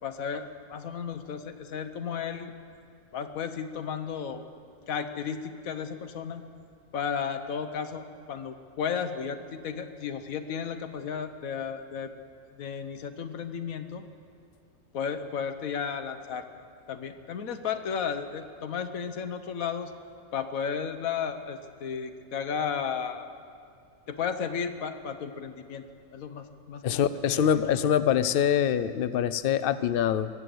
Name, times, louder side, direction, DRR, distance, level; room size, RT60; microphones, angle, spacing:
voice 1, 0.0-2.5 3.1-4.4 4.9-6.4 6.9-8.0 8.3-12.1 12.5-14.0 14.9-16.5 16.9-19.9 20.3-23.3 24.1-25.8 26.1-27.0 27.3-27.6, left 7 dB, 85° left, 9 dB, 1.3 m, -33 dB
voice 2, 26.8-30.3, left 9 dB, 60° left, 14 dB, 0.6 m, -24 dB
21.0 x 8.3 x 7.8 m, 2.4 s
omnidirectional pair, 1.4 m